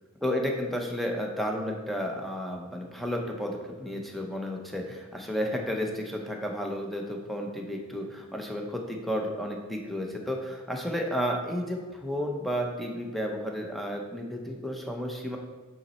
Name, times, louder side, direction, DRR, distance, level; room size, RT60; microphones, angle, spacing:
voice 1, 0.2-15.4, equal, ahead, 1 dB, 0.8 m, -32 dB
8.3 x 4.0 x 4.3 m, 1.3 s
head